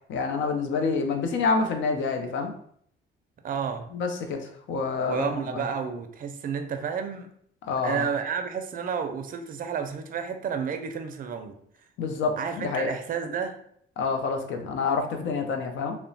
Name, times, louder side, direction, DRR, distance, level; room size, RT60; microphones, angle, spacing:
voice 1, 0.0-2.5 3.9-4.4 4.7-5.3 7.7-8.0 12.0-12.9 14.0-16.0, left 4 dB, 75° left, 4 dB, 0.5 m, -27 dB
voice 2, 3.4-3.9 5.1-7.3 7.8-11.6 12.4-13.6, right 6 dB, 45° right, 7 dB, 0.4 m, -31 dB
2.8 x 2.0 x 2.6 m, 0.65 s
cardioid pair, 90°, 20 cm